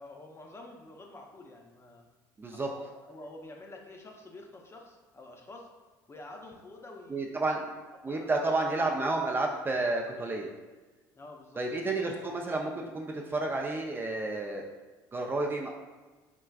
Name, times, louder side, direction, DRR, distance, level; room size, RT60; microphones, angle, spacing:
voice 1, 0.0-2.0 2.5-5.7 6.1-7.4 8.0-8.4 11.1-11.6, left 2 dB, 25° left, 1 dB, 0.6 m, -48 dB
voice 2, 2.4-2.7 7.1-7.6 8.0-10.5 11.6-14.7 15.1-15.7, right 2 dB, 20° right, 0 dB, 0.4 m, -31 dB
4.4 x 2.3 x 2.3 m, 1.3 s
hypercardioid pair, 70°, 10 cm